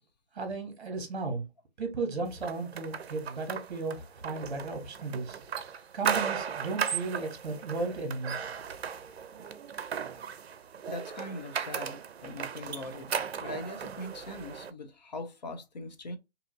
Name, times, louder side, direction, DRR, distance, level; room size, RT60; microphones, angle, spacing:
voice 1, 0.3-1.5 1.8-5.4 5.7-8.4, right 3 dB, 50° right, 0.9 m, -35 dB
sound 1, 2.4-14.7, right 7 dB, 70° right, 0.5 m, -36 dB
voice 2, 10.9-13.1 13.4-16.2, left 2 dB, 40° left, 0.5 m, -41 dB
2.7 x 2.5 x 2.5 m
hypercardioid pair, 165°, 33 cm